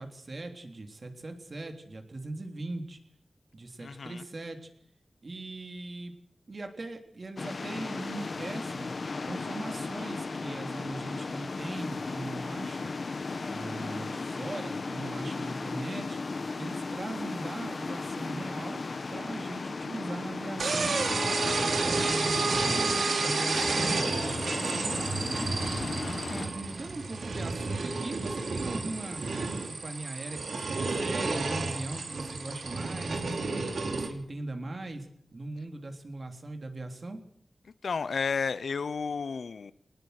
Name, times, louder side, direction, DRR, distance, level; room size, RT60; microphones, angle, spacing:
voice 1, 0.0-3.0 3.5-4.7 5.2-6.1 6.5-8.9 9.2-12.9 13.5-18.8 19.1-21.0 21.6-22.8 23.1-24.2 24.6-25.5 26.3-29.3 29.6-35.1 35.3-37.2, right 2 dB, 45° right, 5 dB, 3.3 m, -40 dB
voice 2, 3.8-4.2 25.8-26.2 37.8-39.7, left 5 dB, 85° left, 16 dB, 0.8 m, -32 dB
sound 1, 7.4-26.5, left 3 dB, 55° left, 1.2 m, -36 dB
sound 2, 20.6-34.1, right 3 dB, 85° right, 3.1 m, -30 dB
21.5 x 19.5 x 6.7 m, 0.66 s
wide cardioid pair, 110°, 0 cm